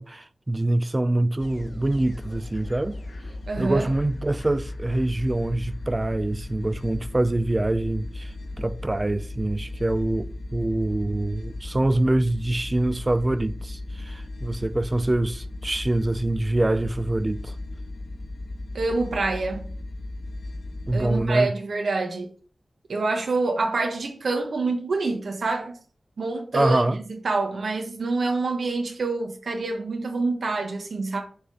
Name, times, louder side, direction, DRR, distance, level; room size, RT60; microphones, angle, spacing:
voice 1, 0.0-3.0 3.6-17.6 20.9-21.5 26.5-27.0, right 1 dB, 25° right, 0.5 m, -25 dB
sound 1, 1.4-21.3, left 2 dB, 85° left, 1.1 m, -36 dB
voice 2, 3.5-3.9 18.7-19.7 20.9-22.3 22.9-25.8 26.2-26.8 27.1-31.2, right 3 dB, 90° right, 1.2 m, -26 dB
7.0 x 3.7 x 6.2 m
wide cardioid pair, 90°, 0 cm